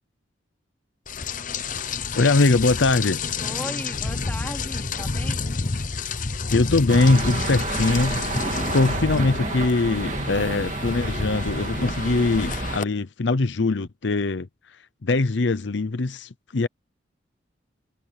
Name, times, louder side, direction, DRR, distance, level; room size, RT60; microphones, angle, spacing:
Rain, 1.1-12.8, left 4 dB, 45° left, 0.9 m, -29 dB
voice 1, 2.2-3.2 6.5-8.2 8.7-14.5 15.0-16.7, left 3 dB, 70° left, 0.7 m, -22 dB
voice 2, 3.4-5.6, left 1 dB, 10° left, 3.1 m, -37 dB
sound 1, 6.9-12.8, right 2 dB, 40° right, 2.0 m, -30 dB
head